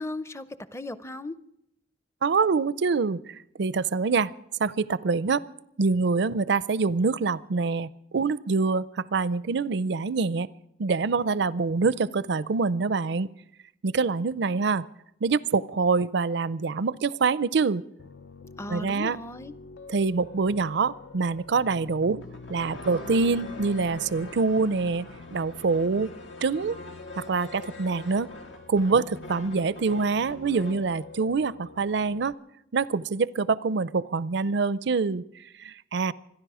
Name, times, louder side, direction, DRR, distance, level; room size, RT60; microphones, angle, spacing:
voice 1, 0.0-1.4 18.6-19.5, left 2 dB, 15° left, 15 dB, 0.6 m, -36 dB
voice 2, 2.2-4.3 4.6-5.4 5.8-10.5 10.8-13.3 13.8-14.8 15.2-17.8 18.7-19.2 19.9-22.2 22.5-26.1 26.4-26.8 27.2-28.3 28.7-32.3 32.7-35.2 35.6-36.1, right 4 dB, 65° right, 19 dB, 0.5 m, -25 dB
Piano, 18.0-32.3, left 4 dB, 65° left, 0.5 m, -46 dB
sound 1, 22.0-30.9, left 1 dB, 85° left, 2.2 m, -44 dB
27.0 x 10.5 x 4.9 m, 0.79 s
head